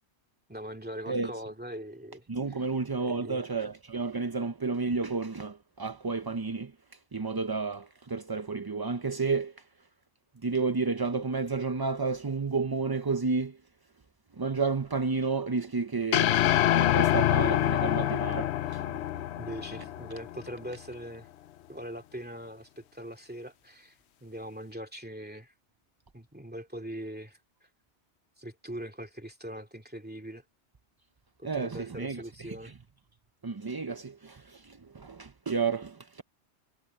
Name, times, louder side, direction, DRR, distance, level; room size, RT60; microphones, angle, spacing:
voice 1, 0.5-2.3 2.6-2.7 3.0-3.4 19.4-21.3 21.7-24.0 24.2-25.5 26.1-27.4 28.4-30.4 31.4-32.7, equal, 10° right, 2.3 m, -41 dB
voice 2, 2.3-6.7 7.1-9.6 10.4-13.6 14.3-16.4 16.7-19.2 31.4-32.7 33.4-36.2, right 4 dB, 30° right, 0.5 m, -31 dB
sound 1, 16.1-20.5, left 13 dB, 75° left, 0.9 m, -26 dB
omnidirectional pair, 1.2 m